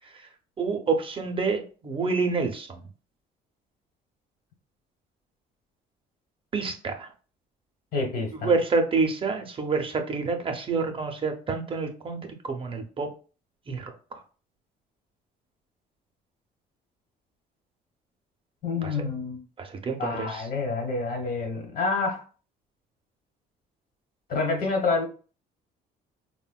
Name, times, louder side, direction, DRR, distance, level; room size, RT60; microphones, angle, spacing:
voice 1, 0.6-2.8 6.5-7.1 8.4-12.2 12.4-13.1 13.7-13.9 18.8-18.9 19.6-20.4, right 4 dB, 30° right, 0.5 m, -27 dB
voice 2, 7.9-8.5 18.6-19.4 20.0-22.2 24.3-25.1, left 3 dB, 60° left, 1.1 m, -28 dB
3.4 x 2.1 x 2.2 m
cardioid pair, 110°, 17 cm